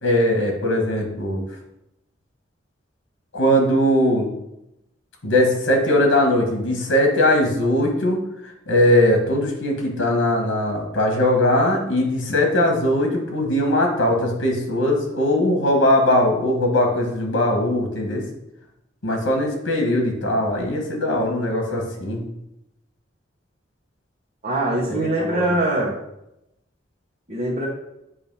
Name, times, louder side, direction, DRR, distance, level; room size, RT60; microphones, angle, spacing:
voice 1, 0.0-1.4 3.3-4.3 5.2-8.2 8.7-18.2 19.0-22.2 24.9-25.4, left 1 dB, 80° left, 2 dB, 1.6 m, -20 dB
voice 2, 24.4-26.0 27.3-27.7, right 1 dB, 35° right, -6 dB, 1.2 m, -22 dB
8.2 x 2.9 x 5.6 m, 0.86 s
head